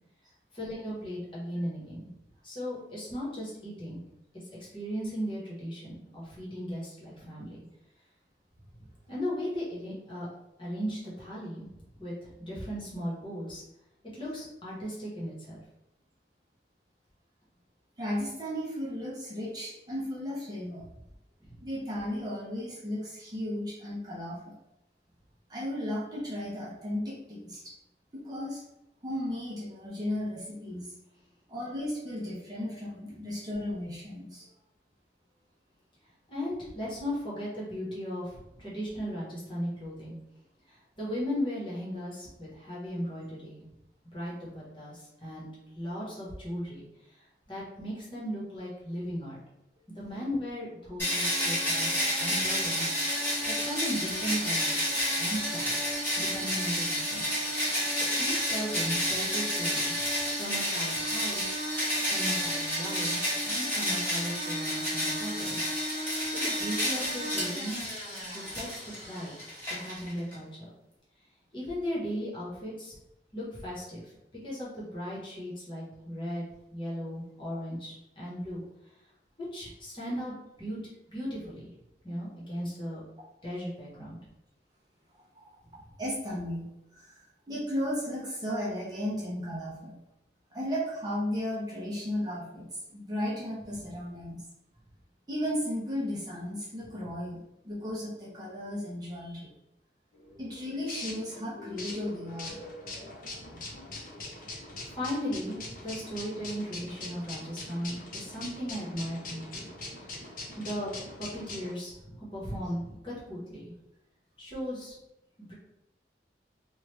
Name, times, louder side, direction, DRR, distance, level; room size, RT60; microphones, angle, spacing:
voice 1, 0.5-2.1 2.4-4.0 4.7-7.6 8.8-10.3 10.6-13.6 14.1-15.6 21.5-21.6 36.3-40.1 40.7-43.7 44.1-49.4 49.9-53.3 53.6-55.9 56.2-57.2 57.7-59.9 60.3-61.5 62.0-65.6 65.9-67.9 68.3-69.3 69.7-70.7 71.5-73.0 73.3-74.1 74.4-76.4 76.7-78.6 79.5-80.8 81.1-81.7 82.0-83.0 83.4-84.2 103.4-103.8 104.4-109.7 110.6-113.7 114.4-114.9 115.5-115.6, equal, 30° left, -6 dB, 1.1 m, -37 dB
voice 2, 18.0-20.9 21.6-24.5 25.5-27.7 28.1-28.6 29.0-30.9 31.5-34.5 85.4-85.5 86.0-86.6 86.9-90.0 90.5-94.4 95.3-99.5 100.4-102.6 103.9-104.0, left 1 dB, 20° right, -6 dB, 0.7 m, -35 dB
sound 1, 51.0-70.3, equal, 10° left, 1.4 m, -30 dB
sound 2, 52.7-63.3, right 3 dB, 70° right, 0.8 m, -46 dB
sound 3, 100.1-111.7, left 2 dB, 50° left, 0.7 m, -42 dB
3.1 x 2.4 x 3.2 m, 0.89 s
head